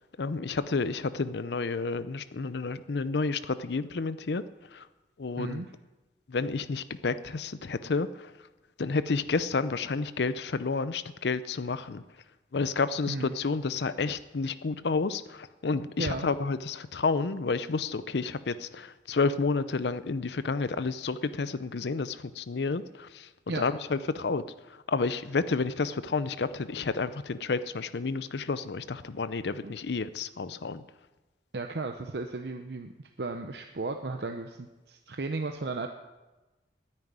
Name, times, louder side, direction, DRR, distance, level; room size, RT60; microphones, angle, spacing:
voice 1, 0.2-4.4 4.7-4.9 5.2-5.6 6.3-8.3 8.8-12.0 12.5-23.3 23.5-30.8, left 4 dB, 80° left, 14 dB, 0.6 m, -30 dB
voice 2, 31.5-35.9, right 3 dB, 75° right, 5 dB, 0.7 m, -35 dB
9.7 x 9.0 x 9.6 m, 1.1 s
head